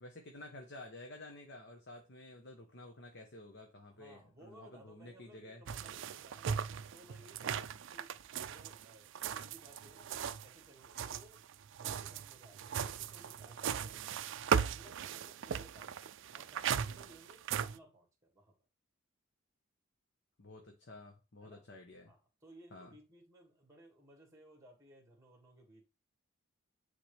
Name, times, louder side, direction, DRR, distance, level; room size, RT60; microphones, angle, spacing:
voice 1, 0.0-5.6 20.4-22.1 22.7-22.9, left 2 dB, 55° left, 1.0 m, -51 dB
voice 2, 3.9-8.2 8.4-14.0 14.6-18.5 21.4-21.7 22.1-25.8, right 1 dB, 15° right, 2.0 m, -60 dB
sound 1, 5.7-10.5 10.8-17.8, right 7 dB, 60° right, 0.4 m, -38 dB
9.1 x 3.8 x 3.4 m
head